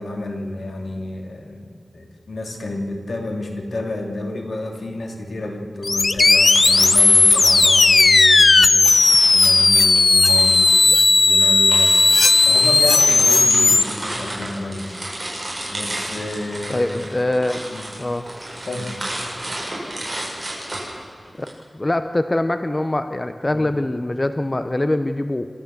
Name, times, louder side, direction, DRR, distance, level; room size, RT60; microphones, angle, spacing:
voice 1, 0.0-9.0 9.3-12.1 12.5-15.0 15.7-17.1 17.6-17.9 18.6-19.0 23.5-23.7, left 2 dB, 75° left, 3 dB, 3.0 m, -30 dB
sound 1, 5.8-13.8, left 3 dB, 55° left, 0.5 m, -14 dB
sound 2, 6.1-8.4 8.8-21.5, right 1 dB, 20° right, 7.8 m, -32 dB
voice 2, 16.7-17.6 18.0-18.2 21.4-25.5, left 1 dB, 25° left, 9 dB, 0.8 m, -23 dB
26.5 x 13.5 x 7.8 m, 2.2 s
wide cardioid pair, 80°, 0 cm